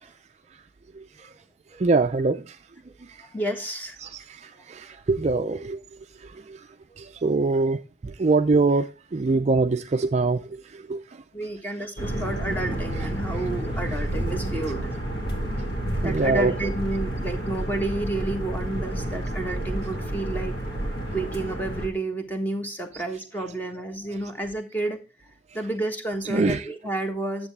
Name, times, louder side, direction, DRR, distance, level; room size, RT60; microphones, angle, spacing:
voice 1, 1.8-2.4 4.0-4.2 4.7-5.8 7.0-7.8 8.0-10.4 10.9-11.0 13.0-13.1 16.0-16.5 22.9-23.0 26.2-26.7, right 3 dB, 35° right, 0.4 m, -23 dB
voice 2, 3.3-3.9 11.3-14.9 16.0-20.5 21.1-25.0 25.5-27.5, right 2 dB, 10° left, 1.2 m, -30 dB
sound 1, 12.0-21.9, right 1 dB, 50° left, 2.1 m, -30 dB
9.7 x 7.3 x 3.3 m
head